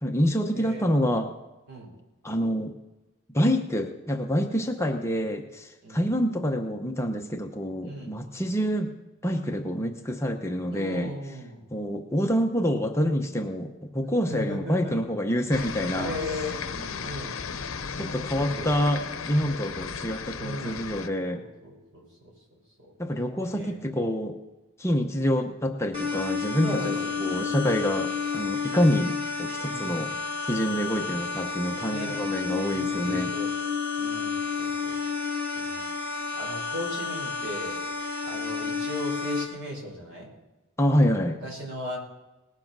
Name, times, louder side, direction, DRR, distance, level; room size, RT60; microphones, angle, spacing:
voice 1, 0.0-1.3 2.2-2.7 3.3-8.9 9.2-11.1 11.7-16.1 18.0-21.4 23.0-24.4 24.8-30.1 30.5-33.3 40.8-41.4, equal, 15° left, 3 dB, 0.8 m, -27 dB
voice 2, 0.5-0.9 1.7-1.9 4.8-4.9 5.8-6.1 7.8-8.1 10.7-11.6 14.3-14.9 15.5-17.4 18.4-18.7 20.4-20.9 21.3-22.1 23.5-23.9 26.6-27.5 29.7-30.1 31.9-32.2 32.7-33.5 34.0-35.0 35.5-35.8 36.3-37.8 38.2-40.3 41.4-42.0, equal, 60° right, -1 dB, 5.8 m, -38 dB
sound 1, 15.5-21.1, left 5 dB, 70° left, 0.8 m, -35 dB
sound 2, 25.9-39.4, left 5 dB, 30° right, 3.0 m, -30 dB
19.5 x 7.7 x 6.0 m, 1.1 s
head